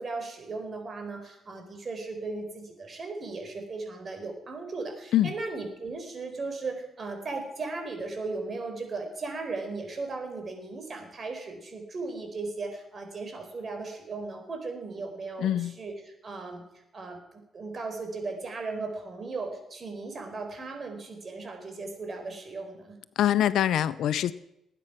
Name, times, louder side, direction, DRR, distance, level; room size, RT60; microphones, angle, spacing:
voice 1, 0.0-16.7 16.9-23.0, right 3 dB, 40° right, 4 dB, 4.4 m, -37 dB
voice 2, 15.4-15.7 23.2-24.3, left 11 dB, 75° left, 17 dB, 0.6 m, -24 dB
20.0 x 9.3 x 5.9 m, 0.86 s
cardioid pair, 90°, 0 cm